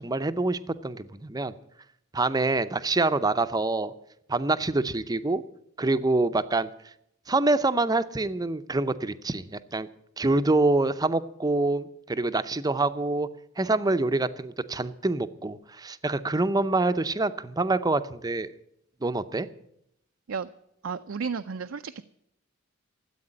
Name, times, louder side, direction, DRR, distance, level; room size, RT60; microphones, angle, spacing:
voice 1, 0.0-1.5 2.1-3.9 4.3-5.4 5.8-6.7 7.3-9.9 10.2-13.3 13.6-18.5 19.0-19.5, right 2 dB, 20° right, 12 dB, 0.6 m, -26 dB
voice 2, 20.8-22.0, right 5 dB, 70° right, 9 dB, 0.5 m, -33 dB
13.5 x 8.4 x 9.9 m, 0.78 s
head